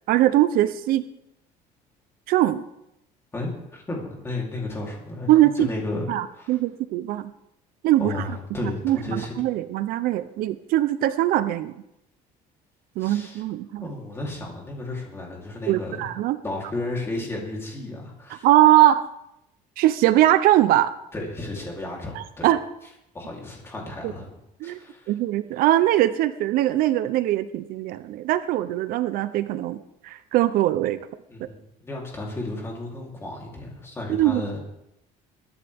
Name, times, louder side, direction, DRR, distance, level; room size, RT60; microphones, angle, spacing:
voice 1, 0.1-1.0 2.3-2.6 5.3-5.7 6.1-7.3 7.8-8.1 8.6-11.7 13.0-13.9 15.7-16.4 18.4-19.1 19.8-20.9 22.2-22.6 24.6-24.8 25.1-31.0 31.4-31.5 34.1-34.4, right 14 dB, 65° right, 13 dB, 0.7 m, -21 dB
voice 2, 3.3-6.6 8.0-9.3 13.0-13.4 13.8-16.1 16.4-18.5 21.1-22.5 23.1-25.1 31.3-34.6, left 2 dB, 15° left, -2 dB, 3.4 m, -33 dB
21.5 x 11.0 x 3.6 m, 0.83 s
cardioid pair, 165°, 16 cm